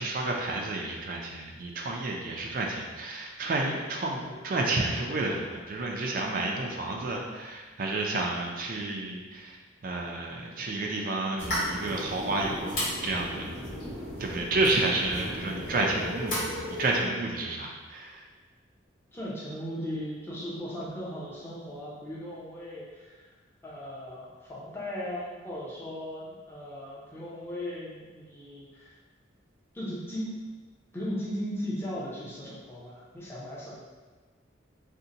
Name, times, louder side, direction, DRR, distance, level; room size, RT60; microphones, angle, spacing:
voice 1, 0.0-9.6 9.8-13.5 14.2-18.2, right 2 dB, 45° right, 0 dB, 0.3 m, -30 dB
sound 1, 11.4-17.0, equal, 80° left, 1.3 m, -35 dB
voice 2, 19.1-23.3 23.6-29.0 29.7-30.4 30.9-33.8, equal, 10° left, -7 dB, 0.6 m, -37 dB
2.7 x 2.1 x 3.8 m, 1.4 s
head